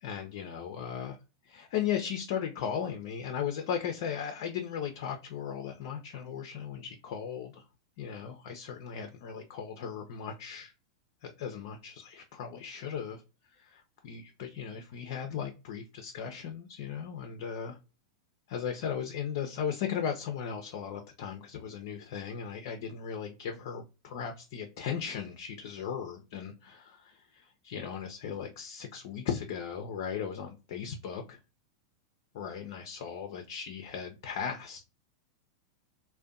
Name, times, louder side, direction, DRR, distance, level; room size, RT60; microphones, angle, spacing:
voice 1, 0.0-1.2 1.4-7.7 8.0-10.7 11.2-13.2 13.5-17.8 18.5-31.4 32.3-34.8, left 8 dB, 55° left, 0.4 m, -37 dB
2.5 x 2.1 x 2.3 m
figure-of-eight pair, 95°, 2 cm